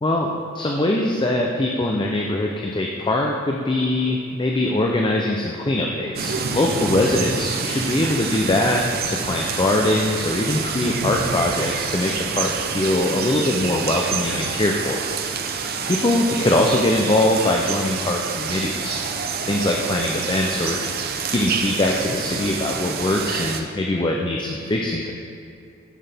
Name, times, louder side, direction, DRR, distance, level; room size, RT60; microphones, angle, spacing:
voice 1, 0.0-15.0 15.9-19.0 19.5-25.1, left 1 dB, 25° left, 0 dB, 0.5 m, -22 dB
sound 1, 6.2-23.6, right 5 dB, 50° right, 0.6 m, -27 dB
10.5 x 5.9 x 3.4 m, 2.5 s
head